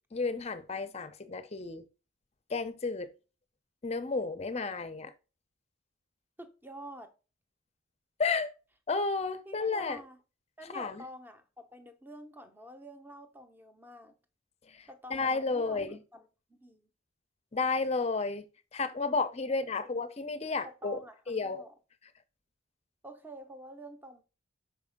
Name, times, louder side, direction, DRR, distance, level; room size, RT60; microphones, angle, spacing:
voice 1, 0.1-1.8 2.5-3.1 3.8-5.1 8.2-8.5 8.9-10.0 10.7-11.0 15.1-16.0 17.5-18.4 18.7-21.0 21.3-21.6, left 4 dB, 30° left, 0.6 m, -32 dB
voice 2, 6.4-7.1 9.4-10.2 10.6-14.1 14.9-16.9 19.8-19.9 20.6-21.7 23.0-24.2, equal, 10° right, 0.7 m, -48 dB
5.7 x 4.7 x 3.6 m
head